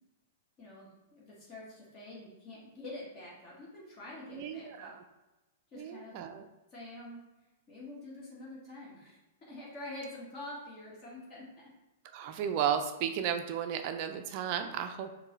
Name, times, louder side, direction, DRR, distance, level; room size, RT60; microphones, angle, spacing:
voice 1, 0.6-4.9 5.7-6.2 6.7-7.2 7.7-11.7, left 2 dB, 35° left, -5 dB, 1.3 m, -46 dB
voice 2, 4.3-5.0 5.7-6.5 12.1-15.1, right 8 dB, 45° right, 7 dB, 0.3 m, -34 dB
4.4 x 2.1 x 3.0 m, 1.1 s
figure-of-eight pair, 105°, 0 cm